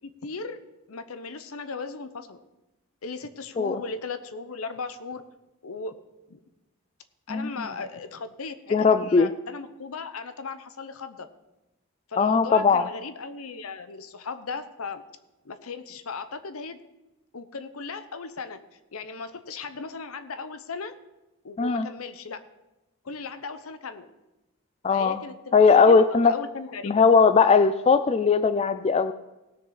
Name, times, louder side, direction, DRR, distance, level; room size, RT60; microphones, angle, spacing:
voice 1, 0.0-0.6 0.9-2.4 3.0-5.2 5.6-5.9 6.3-6.4 7.3-11.3 12.1-15.0 15.4-16.8 17.3-18.6 18.9-20.9 21.4-22.4 23.0-24.1 24.9-27.1, left 4 dB, 80° left, 11 dB, 0.8 m, -37 dB
voice 2, 8.7-9.3 12.2-12.9 21.6-21.9 24.8-25.2 25.5-26.3 26.9-29.1, left 5 dB, 30° left, 11 dB, 0.3 m, -19 dB
18.5 x 6.6 x 3.9 m, 1.0 s
head